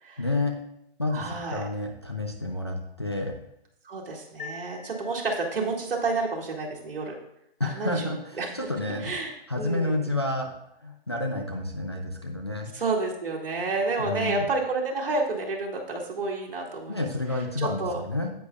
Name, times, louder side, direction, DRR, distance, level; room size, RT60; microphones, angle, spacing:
voice 1, 0.2-0.6 1.0-3.4 7.6-9.1 9.5-10.5 10.8-12.7 14.0-14.5 16.9-18.3, left 2 dB, 25° left, 2 dB, 0.4 m, -30 dB
voice 2, 1.1-1.7 3.8-7.1 7.6-8.5 9.0-10.1 12.7-17.1 17.3-18.0, right 3 dB, 65° right, -2 dB, 2.2 m, -30 dB
sound 1, 4.4-5.9, left 3 dB, 55° left, 0.9 m, -44 dB
9.8 x 8.2 x 2.3 m, 0.78 s
hypercardioid pair, 175°, 30 cm